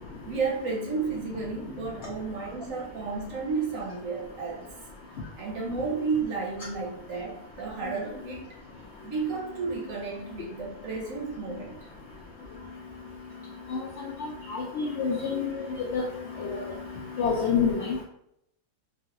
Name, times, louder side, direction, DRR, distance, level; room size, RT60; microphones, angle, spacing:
voice 1, 0.2-4.7 5.4-8.6 9.0-11.8 14.8-14.9, right 4 dB, 65° right, -1 dB, 1.0 m, -32 dB
voice 2, 14.5-15.4 15.9-16.0 16.4-16.5 17.2-17.7, left 6 dB, 75° left, -2 dB, 0.6 m, -26 dB
3.0 x 2.4 x 2.8 m, 0.75 s
omnidirectional pair, 1.6 m